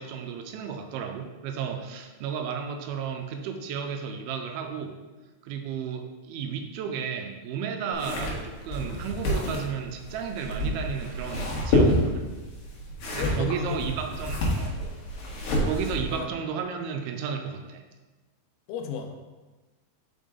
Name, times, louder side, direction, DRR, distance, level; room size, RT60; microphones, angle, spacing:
voice 1, 0.0-4.9 5.4-12.3 13.1-14.8 15.7-17.8, right 7 dB, 85° right, 5 dB, 2.5 m, -33 dB
sound 1, 7.9-16.2, left 1 dB, 70° left, 2.8 m, -28 dB
voice 2, 13.2-13.8 14.4-14.6 16.1-16.3 18.7-19.1, left 7 dB, 85° left, 4 dB, 2.5 m, -33 dB
5.9 x 5.4 x 3.6 m, 1.2 s
omnidirectional pair, 4.4 m